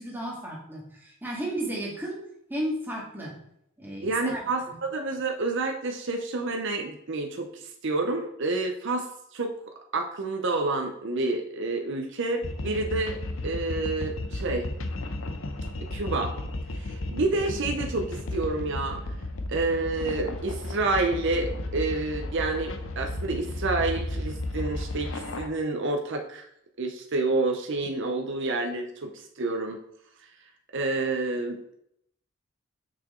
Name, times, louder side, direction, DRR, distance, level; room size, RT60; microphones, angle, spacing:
voice 1, 0.0-2.2 2.5-3.4 3.8-4.4 4.7-4.8, right 1 dB, 10° right, -4 dB, 2.0 m, -33 dB
voice 2, 4.0-9.1 9.3-9.5 9.9-14.7 15.9-16.4 16.8-19.0 19.5-26.5 26.8-29.1 29.4-29.8 30.7-31.6, right 3 dB, 60° right, 3 dB, 0.8 m, -29 dB
sound 1, 12.4-25.5, left 1 dB, 65° left, 0.8 m, -34 dB
6.8 x 5.9 x 3.8 m, 0.73 s
head